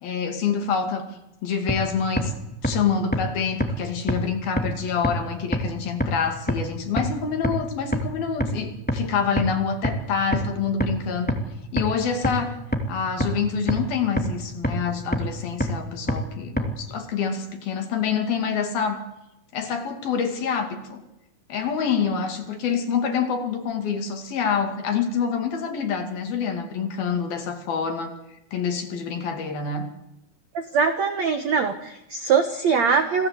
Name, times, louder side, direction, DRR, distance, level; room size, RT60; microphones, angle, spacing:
voice 1, 0.0-1.1 1.4-2.3 2.6-11.3 11.7-12.6 12.9-19.0 19.5-21.0 21.5-28.1 28.5-29.9, left 6 dB, 60° left, 5 dB, 4.0 m, -26 dB
sound 1, 1.7-1.8 2.2-2.3 2.6-2.7 3.1-3.2 3.6-3.7 4.1-4.2 4.6-4.7 5.0-5.1 5.5-5.6 6.0-6.1 6.5-6.6 7.0-7.1 7.4-7.5 7.9-8.0 8.4-8.5 8.9-9.0 9.4-9.5 9.8-9.9 10.3-10.4 10.8-10.9 11.3-11.4 11.8-11.9 12.2-12.3 12.7-12.8 13.2-13.3 13.7-13.8 14.2-14.3 14.6-14.7 15.1-15.2 15.6-15.7 16.1-16.2 16.6-16.7, equal, 5° left, 1.0 m, -22 dB
voice 2, 30.5-33.3, right 5 dB, 65° right, 7 dB, 1.7 m, -22 dB
28.0 x 18.0 x 8.2 m, 0.90 s
omnidirectional pair, 5.1 m